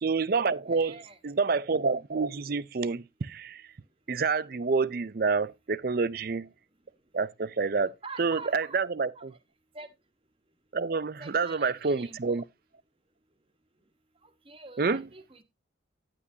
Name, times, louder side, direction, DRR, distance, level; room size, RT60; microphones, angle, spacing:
voice 1, 0.0-3.6 4.1-6.5 7.1-9.3 10.7-12.4 14.8-15.0, right 4 dB, 50° right, 0.5 m, -28 dB
voice 2, 0.7-1.2 7.8-8.8 9.2-9.3 9.7-9.9 11.2-12.4 14.2-15.4, right 4 dB, 30° right, 1.2 m, -46 dB
9.9 x 9.7 x 2.7 m
head